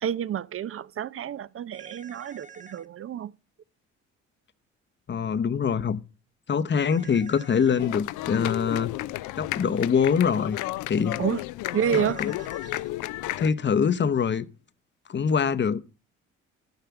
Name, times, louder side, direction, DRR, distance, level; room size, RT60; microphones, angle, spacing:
voice 1, 0.0-3.3 11.2-11.4 11.7-12.2, right 9 dB, 40° right, 0.6 m, -29 dB
sound 1, 1.7-2.9 6.7-7.9 11.7-12.9, right 4 dB, 25° right, 1.4 m, -48 dB
voice 2, 5.1-6.0 6.5-8.9 9.4-10.6 10.9-11.2 11.9-12.0 13.4-14.4 15.1-15.8, left 6 dB, 35° left, 0.9 m, -24 dB
sound 2, 7.8-13.5, left 17 dB, 70° left, 0.5 m, -32 dB
12.0 x 5.7 x 7.0 m
hypercardioid pair, 55°, 32 cm